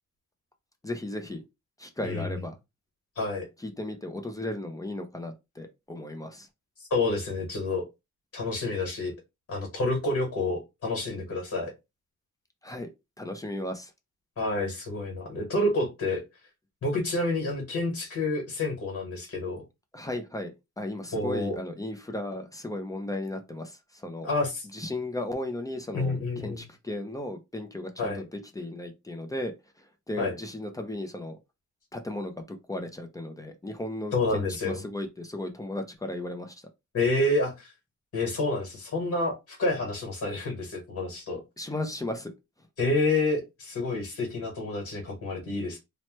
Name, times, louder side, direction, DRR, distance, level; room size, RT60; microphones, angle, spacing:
voice 1, 0.8-1.4 1.8-2.6 3.6-6.5 12.6-12.9 13.2-13.9 19.9-24.3 24.7-29.5 30.1-31.4 31.9-36.6 41.6-42.3, left 1 dB, 10° left, 0.4 m, -35 dB
voice 2, 2.0-2.4 3.1-3.4 6.8-7.8 8.3-9.1 9.5-11.7 14.4-16.2 16.8-19.6 21.1-21.6 24.2-24.7 25.9-26.6 28.0-28.2 30.2-30.3 34.1-34.8 36.9-37.7 38.1-41.4 42.8-45.8, left 2 dB, 55° left, 1.3 m, -28 dB
2.9 x 2.1 x 3.0 m
wide cardioid pair, 120°, 30 cm